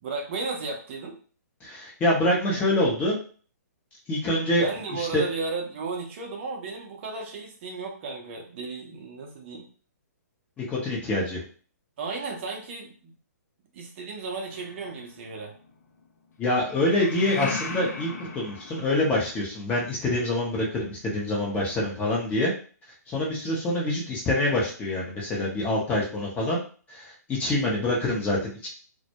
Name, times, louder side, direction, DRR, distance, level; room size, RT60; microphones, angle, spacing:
voice 1, 0.0-1.2 4.6-9.7 12.0-13.1 13.7-15.5, right 4 dB, 40° right, 0 dB, 0.6 m, -34 dB
voice 2, 1.6-3.2 4.1-5.2 10.6-11.4 16.4-22.5 23.1-26.6 26.9-28.7, left 1 dB, 15° left, -3 dB, 0.7 m, -26 dB
sound 1, 14.5-15.3 16.7-19.4, left 4 dB, 70° left, 0.5 m, -36 dB
2.2 x 2.0 x 2.8 m, 0.41 s
hypercardioid pair, 140°, 9 cm